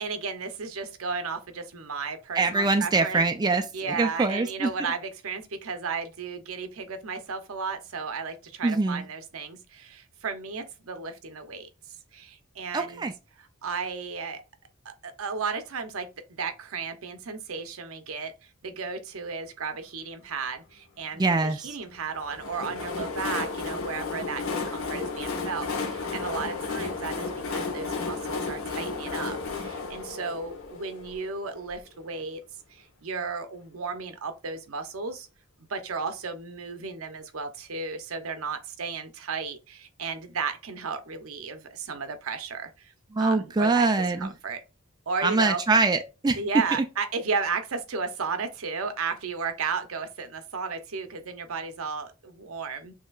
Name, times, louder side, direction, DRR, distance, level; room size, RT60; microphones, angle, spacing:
voice 1, 0.0-3.2 3.7-11.7 12.1-13.1 13.6-14.4 14.8-18.3 18.6-32.4 32.7-35.3 35.7-42.9 43.2-44.6 45.1-45.6 46.4-52.9, right 5 dB, 75° right, 0.7 m, -34 dB
voice 2, 2.3-4.7 8.6-9.0 12.7-13.1 21.2-21.7 43.1-44.3 45.2-46.4, right 3 dB, 20° right, 0.4 m, -24 dB
Train, 22.1-31.8, left 4 dB, 75° left, 1.2 m, -33 dB
6.4 x 2.9 x 2.4 m
head